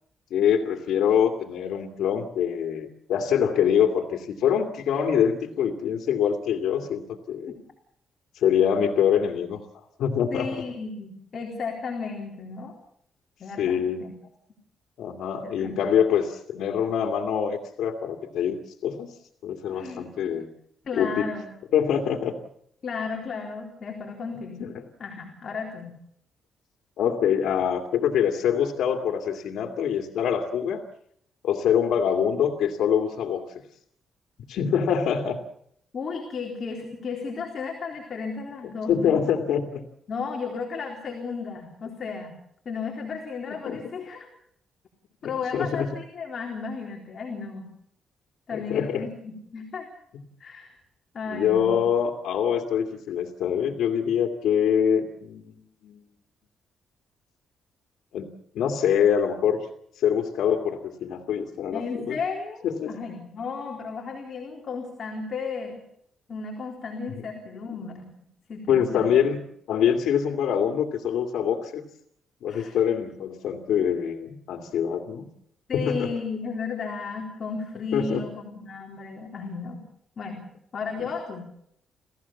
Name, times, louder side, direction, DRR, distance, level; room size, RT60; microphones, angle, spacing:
voice 1, 0.3-7.5 8.3-9.6 10.0-10.6 13.6-14.0 15.0-18.6 18.8-19.1 19.4-20.5 21.0-21.3 21.7-22.3 24.6-24.8 27.0-30.8 31.4-33.4 34.5-35.4 38.9-39.8 43.6-43.9 45.2-45.9 48.5-49.1 51.3-55.4 55.8-56.0 58.1-59.6 60.0-62.2 62.6-62.9 68.7-69.4 69.7-71.8 72.4-75.3 75.7-76.1 77.9-78.2, left 8 dB, 80° left, 4 dB, 2.4 m, -24 dB
voice 2, 10.3-12.7 13.4-14.1 15.4-16.0 19.7-20.1 20.8-21.5 22.8-24.7 25.0-26.0 35.1-35.2 35.9-39.2 40.1-42.4 42.7-44.3 45.2-47.7 48.5-49.9 50.4-50.8 51.1-51.8 61.7-65.8 66.3-68.1 68.5-69.1 72.5-72.7 75.7-79.8 80.2-81.5, left 5 dB, 35° left, 1 dB, 4.0 m, -34 dB
29.5 x 16.0 x 7.2 m, 0.72 s
cardioid pair, 175°, 0 cm